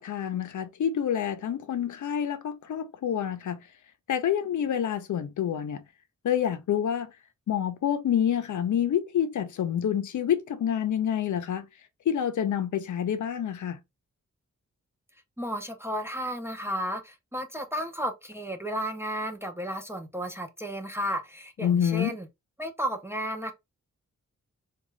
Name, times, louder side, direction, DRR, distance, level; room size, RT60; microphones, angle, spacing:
voice 1, 0.0-3.6 4.1-5.8 6.2-7.1 7.5-11.7 12.1-13.8 21.6-22.2, left 9 dB, 75° left, 0.6 m, -27 dB
voice 2, 15.4-22.3 22.6-23.5, equal, 10° right, 0.5 m, -33 dB
3.7 x 2.3 x 3.1 m
wide cardioid pair, 135°, 30 cm